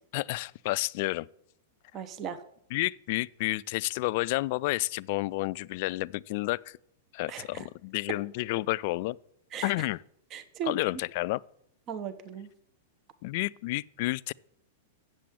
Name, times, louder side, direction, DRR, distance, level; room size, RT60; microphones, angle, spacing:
voice 1, 0.1-1.3 2.7-6.8 7.1-9.2 9.6-10.0 10.7-11.4 13.2-14.3, left 20 dB, 55° left, 0.3 m, -30 dB
voice 2, 1.9-2.4 7.3-7.7 9.5-9.7 10.3-10.8 11.9-12.5, right 8 dB, 35° right, 0.9 m, -37 dB
7.6 x 7.5 x 8.6 m
hypercardioid pair, 115°, 0 cm